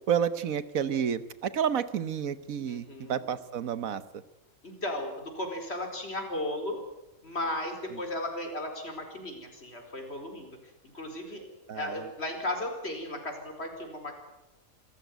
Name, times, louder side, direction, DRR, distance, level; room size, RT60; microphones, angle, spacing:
voice 1, 0.1-4.0 11.7-12.0, right 8 dB, 75° right, 14 dB, 1.5 m, -30 dB
voice 2, 2.6-3.3 4.6-6.8 7.2-10.5 10.9-11.4 11.7-14.1, left 1 dB, 45° left, 3 dB, 4.8 m, -35 dB
26.0 x 14.5 x 9.3 m, 0.95 s
omnidirectional pair, 1.5 m